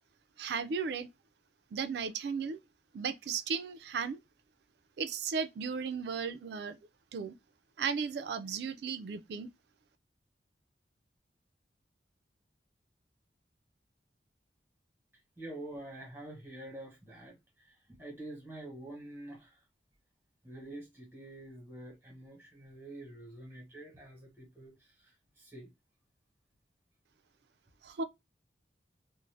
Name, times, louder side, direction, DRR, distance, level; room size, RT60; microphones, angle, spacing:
voice 1, 0.4-1.1 1.7-2.6 2.9-4.2 5.0-6.8 7.1-7.3 7.8-9.5 27.8-28.0, right 5 dB, 65° right, 0.3 m, -35 dB
voice 2, 15.4-19.6 20.4-25.7, right 1 dB, 15° right, 1.0 m, -47 dB
2.5 x 2.0 x 3.2 m
head